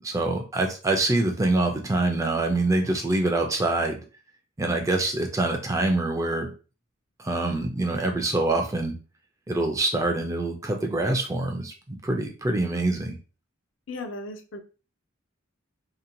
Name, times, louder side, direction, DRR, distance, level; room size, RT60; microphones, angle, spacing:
voice 1, 0.0-4.0 4.6-6.5 7.2-9.0 9.5-13.2, right 2 dB, 15° right, 3 dB, 0.3 m, -25 dB
voice 2, 13.9-14.6, left 2 dB, 65° left, 5 dB, 0.5 m, -36 dB
2.8 x 2.1 x 2.6 m, 0.34 s
head